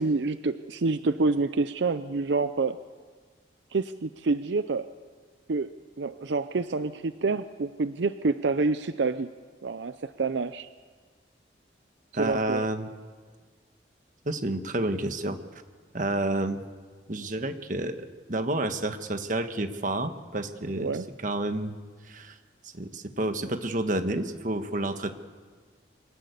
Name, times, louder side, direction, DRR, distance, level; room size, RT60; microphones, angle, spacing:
voice 1, 0.0-2.8 3.7-4.9 5.5-5.7 6.0-9.3 9.6-10.7 12.2-12.7 20.8-21.1, right 3 dB, 75° right, 12 dB, 0.6 m, -27 dB
voice 2, 12.1-12.9 14.2-15.4 15.9-16.6 17.1-21.0 21.2-21.8 22.1-22.3 22.7-25.1, right 1 dB, 45° right, 8 dB, 1.4 m, -30 dB
25.0 x 18.0 x 8.2 m, 1.5 s
head